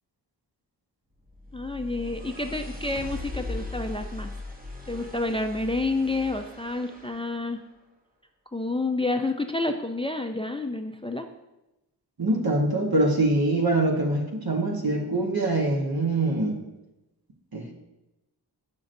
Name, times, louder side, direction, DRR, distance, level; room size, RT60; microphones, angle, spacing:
sound 1, 1.3-7.4, left 2 dB, 20° right, 1.0 m, -39 dB
voice 1, 1.5-4.3 4.9-7.6 8.5-11.3, left 2 dB, 15° left, 5 dB, 0.4 m, -29 dB
voice 2, 12.2-16.6 17.5-17.7, right 2 dB, 60° right, 0 dB, 1.2 m, -24 dB
7.6 x 6.0 x 2.6 m, 0.96 s
wide cardioid pair, 55°, 41 cm